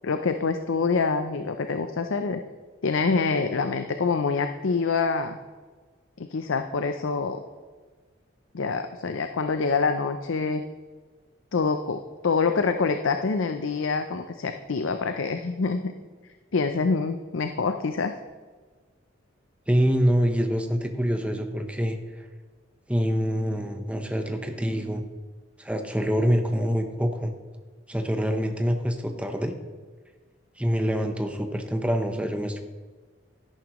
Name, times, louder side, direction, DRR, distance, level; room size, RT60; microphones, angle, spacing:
voice 1, 0.0-2.4 2.8-5.4 6.2-7.4 8.5-10.6 11.5-15.9 16.5-18.1, left 4 dB, 75° left, 7 dB, 0.6 m, -26 dB
voice 2, 19.7-22.3 22.9-25.1 25.6-27.3 27.9-29.5 30.6-32.6, equal, 5° right, 5 dB, 0.8 m, -25 dB
13.0 x 11.0 x 3.1 m, 1.4 s
head